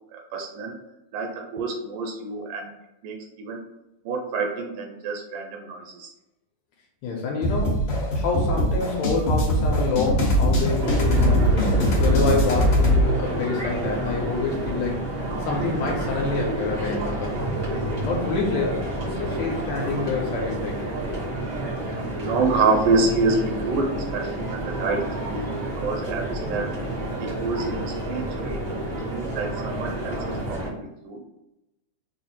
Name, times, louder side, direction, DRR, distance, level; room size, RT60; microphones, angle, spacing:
voice 1, 0.1-0.8 1.1-2.7 3.0-3.6 4.1-6.1 22.1-25.4 25.8-26.7 27.2-30.1 30.5-31.2, right 3 dB, 85° right, 2 dB, 2.2 m, -27 dB
voice 2, 7.0-15.1 15.4-17.6 18.1-20.9, left 4 dB, 75° left, -1 dB, 1.7 m, -27 dB
sound 1, 7.4-13.0, equal, 55° left, 1.4 m, -21 dB
sound 2, 10.8-30.7, right 1 dB, 65° right, 0.7 m, -29 dB
4.9 x 2.0 x 4.2 m, 0.94 s
omnidirectional pair, 3.6 m